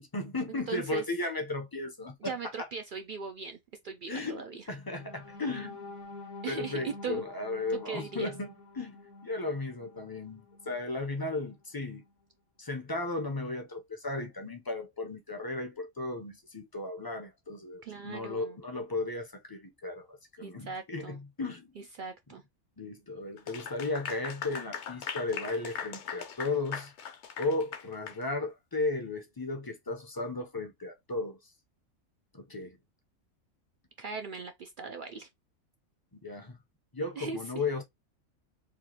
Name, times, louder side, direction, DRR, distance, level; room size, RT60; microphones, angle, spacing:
voice 1, 0.1-2.3 4.1-5.9 6.5-12.1 12.6-21.7 22.8-26.9 27.4-31.4 32.3-32.8 36.1-36.6 36.9-37.8, left 2 dB, 25° left, 0.4 m, -35 dB
voice 2, 0.7-1.0 2.2-3.6 3.8-4.6 6.4-7.2 7.7-8.3 17.8-18.6 20.4-21.2 22.0-22.4 34.0-35.3 37.2-37.4, right 5 dB, 80° right, 0.4 m, -39 dB
sound 1, 4.9-10.9 11.4-11.5 11.9-12.1, left 3 dB, 85° left, 1.5 m, -48 dB
Clapping / Applause, 23.4-28.2, left 7 dB, 60° left, 0.9 m, -40 dB
4.5 x 2.5 x 2.8 m
omnidirectional pair, 1.4 m